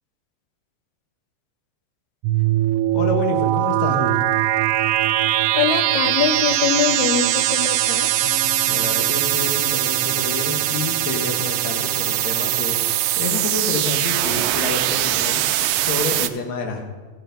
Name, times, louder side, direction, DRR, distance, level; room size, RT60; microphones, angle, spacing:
sound 1, 2.2-16.3, right 14 dB, 80° right, 1.9 m, -21 dB
voice 1, 2.9-4.2 8.7-16.8, left 3 dB, 60° left, 2 dB, 2.3 m, -28 dB
voice 2, 5.6-8.1, left 8 dB, 85° left, 10 dB, 1.6 m, -23 dB
sound 2, 8.2-13.0, left 1 dB, 10° right, 1.9 m, -39 dB
14.0 x 6.8 x 5.2 m, 1.3 s
omnidirectional pair, 4.1 m